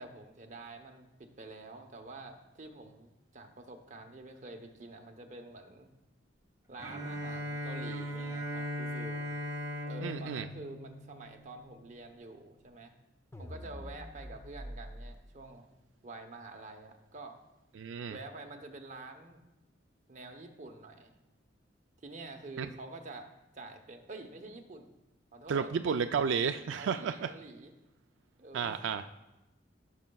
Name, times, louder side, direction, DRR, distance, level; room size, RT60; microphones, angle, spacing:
voice 1, 0.0-5.9 6.7-9.3 9.8-12.9 13.4-15.7 16.0-17.4 18.1-19.4 20.1-21.2 22.0-24.9 25.3-25.7 26.7-27.7 28.4-28.8, right 2 dB, 40° right, 4 dB, 0.9 m, -48 dB
Bowed string instrument, 6.8-11.7, left 1 dB, 20° right, 1.4 m, -38 dB
voice 2, 10.0-10.5 17.8-18.2 22.6-22.7 25.5-27.3 28.5-29.0, right 6 dB, 85° right, 8 dB, 0.3 m, -32 dB
sound 1, 13.3-15.2, equal, 15° left, 0.5 m, -45 dB
16.5 x 6.3 x 2.3 m, 0.98 s
head